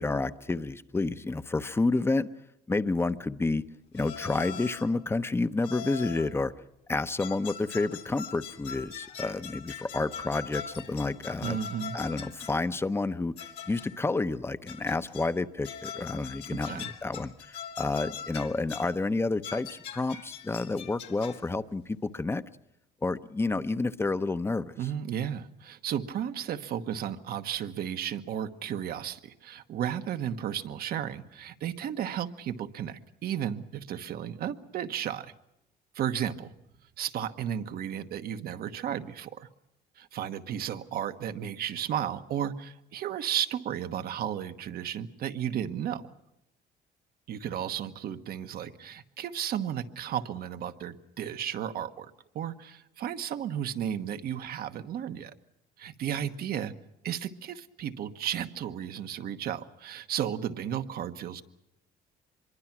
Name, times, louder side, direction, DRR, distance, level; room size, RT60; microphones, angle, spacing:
voice 1, 0.0-2.3 2.7-3.6 3.9-6.5 6.9-11.6 11.9-22.4 23.0-24.7, left 3 dB, 15° left, 12 dB, 0.8 m, -30 dB
sound 1, 4.0-5.0 5.6-6.3 6.9-12.7 13.4-14.0 14.7-15.4 15.6-19.0 19.4-21.5, left 8 dB, 80° left, 2.2 m, -42 dB
voice 2, 11.4-12.0 16.5-16.9 24.8-35.3 35.9-36.5 37.0-39.5 40.0-46.0 47.3-55.3 55.8-56.7 57.0-61.4, right 9 dB, 65° right, 9 dB, 1.2 m, -34 dB
24.5 x 23.0 x 6.0 m, 0.84 s
cardioid pair, 110°, 17 cm